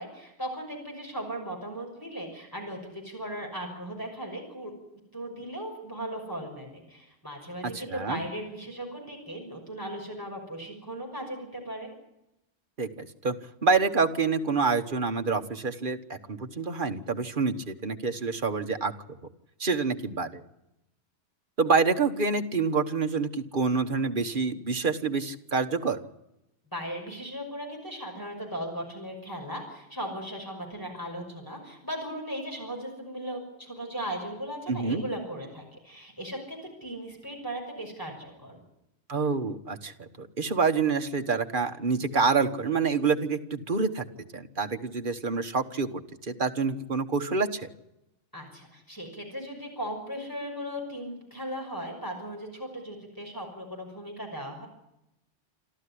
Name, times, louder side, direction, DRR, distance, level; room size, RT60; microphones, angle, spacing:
voice 1, 0.0-4.7 5.1-11.9 26.7-38.6 48.3-54.7, equal, 15° left, 0 dB, 6.1 m, -37 dB
voice 2, 7.7-8.2 12.8-13.3 13.6-18.9 19.6-20.4 21.6-26.0 34.7-35.0 39.1-44.0 44.3-47.6, right 4 dB, 45° right, 6 dB, 1.5 m, -27 dB
27.5 x 13.5 x 9.9 m, 0.88 s
omnidirectional pair, 1.3 m